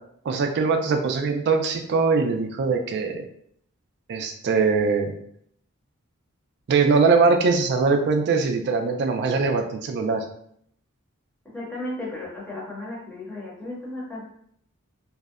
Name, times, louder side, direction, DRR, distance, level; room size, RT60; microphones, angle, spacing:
voice 1, 0.3-3.2 4.1-5.1 6.7-10.2, right 4 dB, 50° right, 5 dB, 0.3 m, -22 dB
voice 2, 11.5-14.2, left 1 dB, 5° left, -6 dB, 0.7 m, -34 dB
2.6 x 2.0 x 2.4 m, 0.67 s
head